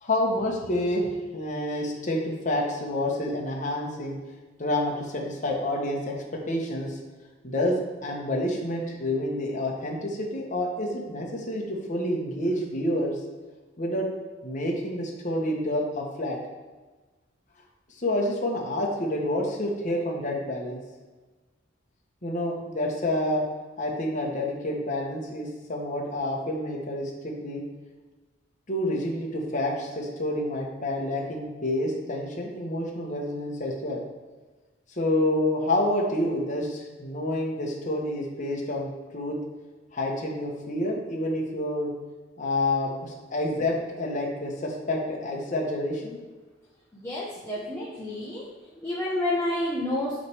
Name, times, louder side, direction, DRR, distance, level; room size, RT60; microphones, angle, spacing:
voice 1, 0.0-4.2 4.6-6.1 6.5-7.0 7.4-13.2 13.8-14.1 14.4-16.4 18.0-20.8 22.2-23.4 23.8-27.6 28.7-34.0 35.0-39.4 39.9-41.9 42.4-46.2, left 1 dB, 40° left, -1 dB, 1.1 m, -28 dB
voice 2, 47.0-48.4 48.8-50.2, left 1 dB, 15° left, -6 dB, 0.9 m, -29 dB
7.9 x 3.3 x 4.8 m, 1.3 s
head